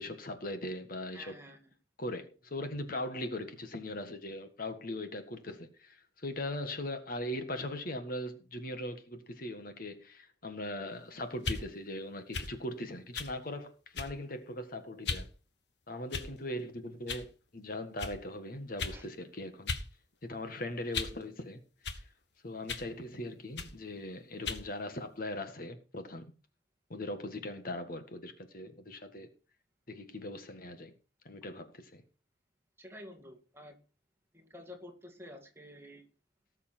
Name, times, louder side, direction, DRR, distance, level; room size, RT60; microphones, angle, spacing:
voice 1, 0.0-1.3 2.0-15.3 15.9-19.7 20.2-22.1 22.4-26.3 26.9-29.3 29.9-30.9 31.2-32.0, left 1 dB, 55° left, 1.7 m, -40 dB
voice 2, 1.1-1.7 18.9-19.1 32.8-33.8 34.3-36.1, left 1 dB, 15° right, 2.4 m, -50 dB
sound 1, 11.4-11.6 12.3-12.5 13.1-13.3 13.9-14.3 15.0-15.3 16.1-16.5 17.1-17.3 18.0-18.2 18.8-19.0 19.7-19.9 20.2-21.2 21.8-22.0 22.7-22.9 23.6-23.8 24.4-24.7, left 4 dB, 70° left, 1.5 m, -37 dB
19.0 x 6.9 x 4.4 m
head